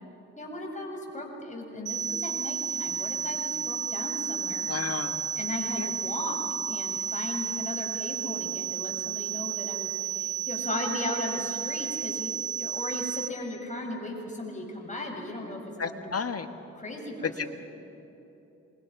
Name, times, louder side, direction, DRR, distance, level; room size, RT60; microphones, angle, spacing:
voice 1, 0.4-4.7 5.4-12.3 12.6-16.0 16.7-17.5, left 1 dB, 25° left, 0 dB, 7.3 m, -36 dB
sound 1, 1.9-13.3, right 9 dB, 85° right, 1.6 m, -32 dB
voice 2, 4.7-5.2 5.8-5.9 15.8-16.5 17.4-17.5, left 5 dB, 55° left, 8 dB, 1.6 m, -32 dB
27.0 x 22.5 x 6.1 m, 3.0 s
supercardioid pair, 50°, 30 cm